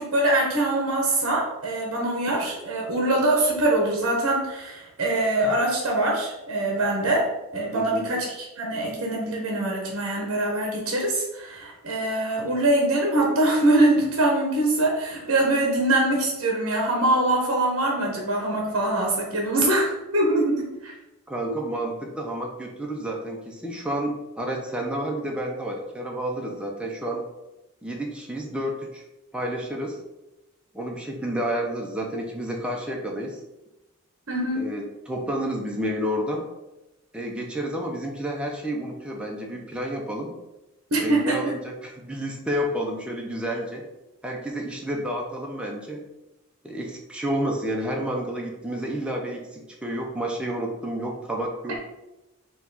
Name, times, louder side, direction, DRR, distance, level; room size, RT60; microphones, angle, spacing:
voice 1, 0.0-7.2 7.5-20.9 34.3-34.7 40.9-41.5, right 1 dB, 65° right, -1 dB, 0.8 m, -23 dB
voice 2, 7.7-8.1 21.3-27.3 27.8-29.0 29.3-30.0 30.7-33.4 34.6-36.5 37.1-40.4 41.0-43.9 44.2-46.0 46.6-51.8, right 1 dB, 5° right, -1 dB, 0.5 m, -30 dB
4.5 x 2.3 x 3.9 m, 1.0 s
head